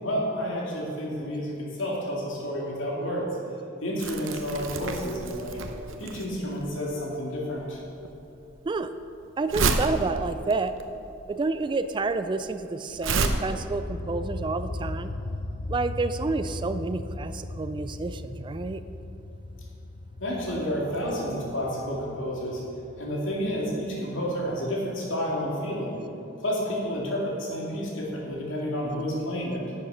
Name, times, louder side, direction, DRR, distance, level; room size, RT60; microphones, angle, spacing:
voice 1, 0.0-3.3 3.8-5.6 6.0-7.8 20.2-22.6 23.0-26.0 26.4-29.6, equal, 85° left, -3 dB, 2.4 m, -30 dB
Crumpling crinkling, 4.0-13.3, right 4 dB, 90° right, 0.7 m, -31 dB
voice 2, 9.4-10.7 11.3-15.1 15.7-18.8, right 3 dB, 25° right, 11 dB, 0.3 m, -29 dB
sound 1, 12.9-24.5, left 2 dB, 60° left, 0.8 m, -38 dB
10.5 x 6.7 x 5.6 m, 2.8 s
head